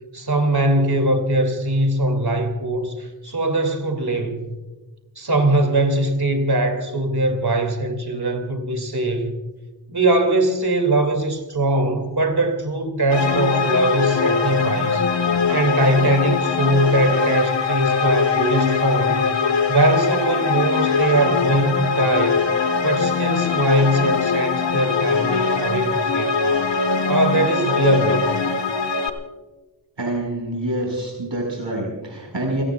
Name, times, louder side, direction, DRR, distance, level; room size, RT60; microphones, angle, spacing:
voice 1, 0.1-4.5 5.2-9.3 9.9-15.1 15.5-19.2 19.7-22.5 22.8-26.5 27.1-28.3, right 1 dB, 55° right, 2.6 m, -21 dB
sound 1, 13.1-29.1, left 5 dB, 75° left, 1.4 m, -21 dB
voice 2, 30.0-32.6, right 1 dB, 80° right, 5.0 m, -26 dB
29.5 x 18.0 x 2.3 m
wide cardioid pair, 40°, 44 cm